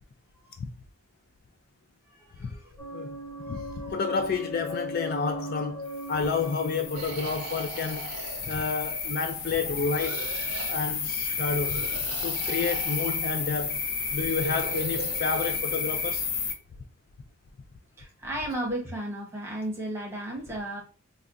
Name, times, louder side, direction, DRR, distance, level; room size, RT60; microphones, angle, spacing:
voice 1, 2.1-2.8 3.4-3.9 7.4-7.5 18.0-20.8, right 1 dB, 10° right, 0.9 m, -35 dB
sound 1, 2.8-8.6, equal, 20° left, 1.3 m, -38 dB
voice 2, 3.5-8.2 8.4-10.2 10.7-11.8 12.2-13.8 14.1-16.3, left 5 dB, 40° left, 0.3 m, -30 dB
sound 2, 5.9-16.5, left 5 dB, 65° left, 0.7 m, -32 dB
sound 3, 6.9-9.2 9.9-10.8 11.6-13.2 14.1-15.6, right 5 dB, 85° right, 0.6 m, -40 dB
4.0 x 2.3 x 2.4 m
head